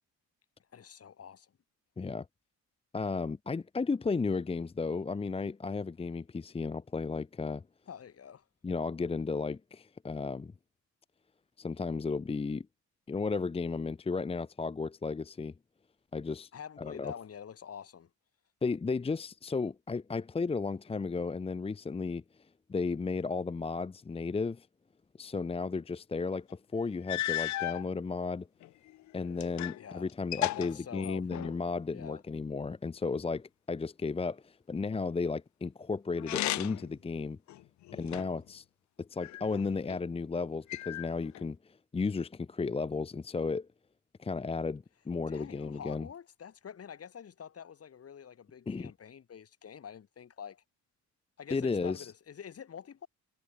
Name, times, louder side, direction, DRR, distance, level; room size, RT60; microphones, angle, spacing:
voice 1, 0.7-1.5 7.9-8.4 16.5-18.1 29.8-30.1 30.4-31.5 31.9-32.2 45.3-50.6 51.4-53.1, left 8 dB, 50° left, 4.9 m, -46 dB
voice 2, 2.0-2.3 2.9-7.6 8.6-10.5 11.6-12.7 13.1-15.5 16.1-16.5 16.8-17.1 18.6-22.2 22.7-24.7 25.2-28.5 29.1-37.4 37.9-38.6 39.0-43.7 44.2-46.1 48.7-48.9 51.5-52.1, left 4 dB, 20° left, 0.7 m, -34 dB
sound 1, 26.5-26.6 27.1-27.8 28.6-29.8 30.1-31.6 36.2-36.9 37.5-38.5 39.2-40.0 40.7-41.5, left 15 dB, 70° left, 0.6 m, -35 dB
cardioid pair, 90°, 30 cm